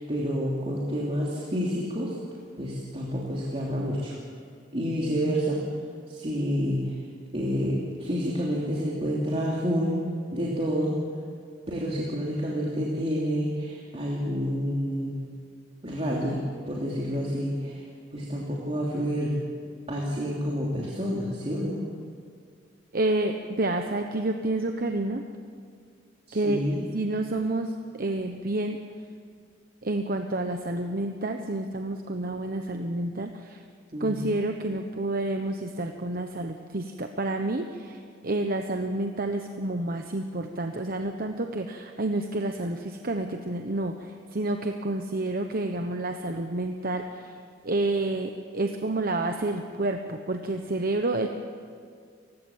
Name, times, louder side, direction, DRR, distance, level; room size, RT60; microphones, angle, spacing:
voice 1, 0.0-2.1 2.6-4.1 4.7-5.6 6.1-7.0 7.3-10.0 10.3-11.0 11.7-15.2 15.8-17.8 18.1-19.4 19.9-21.8 26.3-26.8 33.9-34.3, equal, 35° right, -4 dB, 3.1 m, -29 dB
voice 2, 22.9-25.2 26.3-26.6 26.9-28.8 29.8-33.6 34.0-47.2 47.6-51.3, right 2 dB, 55° right, 5 dB, 1.1 m, -29 dB
29.0 x 16.0 x 7.3 m, 2.2 s
head